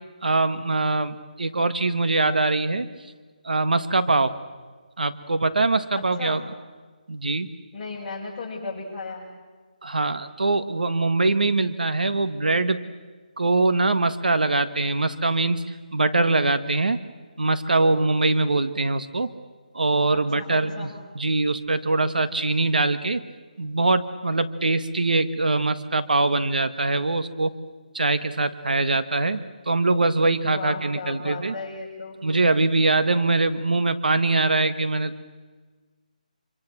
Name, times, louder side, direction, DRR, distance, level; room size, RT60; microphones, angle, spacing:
voice 1, 0.2-2.9 3.4-4.4 5.0-6.4 7.1-7.5 9.8-12.8 13.4-15.6 15.9-17.0 17.4-19.3 19.7-20.9 21.2-23.2 23.6-27.5 27.9-31.5 32.2-35.2, right 3 dB, 85° right, 11 dB, 1.7 m, -23 dB
voice 2, 5.9-6.4 7.7-9.3 20.1-21.0 30.2-32.2, left 3 dB, 15° left, -6 dB, 6.9 m, -35 dB
27.0 x 25.0 x 7.4 m, 1.4 s
hypercardioid pair, 165°, 5 cm